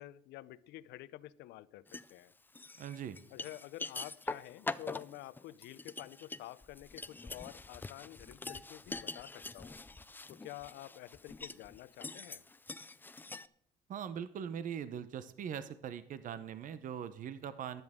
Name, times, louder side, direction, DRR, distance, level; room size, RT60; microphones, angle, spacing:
voice 1, 0.0-2.3 3.3-9.8 10.3-12.4, left 16 dB, 85° left, 18 dB, 0.6 m, -49 dB
sound 1, 1.9-2.1 2.6-13.5, left 3 dB, 10° left, 0.4 m, -44 dB
voice 2, 2.8-3.2 13.9-17.8, right 8 dB, 50° right, 13 dB, 0.8 m, -41 dB
14.0 x 10.5 x 3.7 m, 0.67 s
cardioid pair, 110°, 17 cm